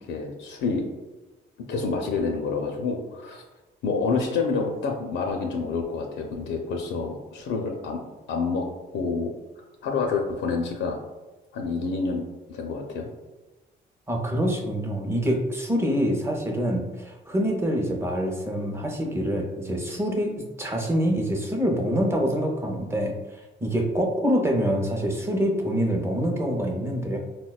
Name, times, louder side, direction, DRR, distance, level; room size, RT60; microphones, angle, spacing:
voice 1, 0.0-0.9 1.7-3.4 3.8-8.0 8.3-8.6 8.9-9.3 9.8-11.0 11.5-13.1, left 4 dB, 75° left, 2 dB, 0.4 m, -28 dB
voice 2, 14.1-23.1 23.6-27.2, equal, 15° right, 1 dB, 0.6 m, -25 dB
4.2 x 2.1 x 2.3 m, 1.1 s
cardioid pair, 90°, 20 cm